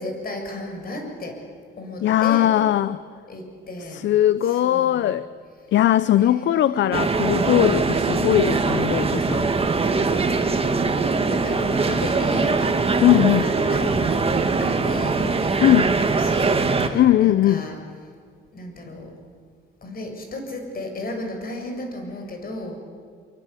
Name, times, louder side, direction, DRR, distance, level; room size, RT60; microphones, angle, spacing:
voice 1, 0.0-1.4 1.8-2.5 3.3-4.0 4.4-5.0 6.1-7.1 9.5-15.8 16.1-17.8 18.5-19.1 19.8-22.8, left 1 dB, 50° left, 4 dB, 7.1 m, -34 dB
voice 2, 2.0-3.0 3.8-5.3 5.7-9.5 13.0-13.5 15.6-15.9 16.9-17.7, left 12 dB, 65° left, 16 dB, 0.7 m, -19 dB
sound 1, 6.9-16.9, right 4 dB, 30° right, 2.2 m, -22 dB
25.5 x 25.0 x 8.3 m, 2.1 s
cardioid pair, 90°, 20 cm